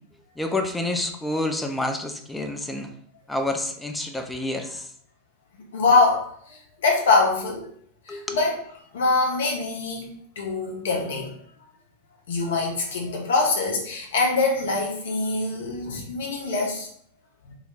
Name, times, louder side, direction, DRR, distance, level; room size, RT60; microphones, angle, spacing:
voice 1, 0.4-2.9 3.3-4.9 8.1-8.4, left 2 dB, 5° left, 5 dB, 0.3 m, -28 dB
voice 2, 5.7-7.7 8.1-8.6 8.9-10.1 10.4-11.3 12.3-16.9 17.4-17.5, left 3 dB, 60° left, 0 dB, 0.6 m, -24 dB
2.2 x 2.0 x 3.0 m, 0.63 s
figure-of-eight pair, 90°, 0 cm